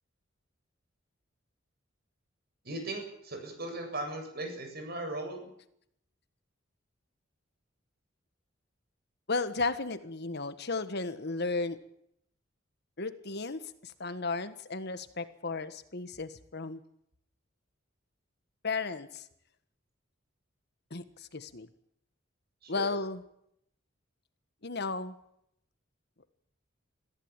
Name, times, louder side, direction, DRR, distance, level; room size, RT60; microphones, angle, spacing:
voice 1, 2.6-5.4 22.6-22.9, right 2 dB, 55° right, 4 dB, 7.9 m, -38 dB
voice 2, 9.3-11.8 13.0-16.8 18.6-19.3 20.9-21.7 22.7-23.2 24.6-25.1, left 3 dB, 55° left, 12 dB, 1.5 m, -34 dB
23.0 x 15.5 x 9.0 m, 0.73 s
head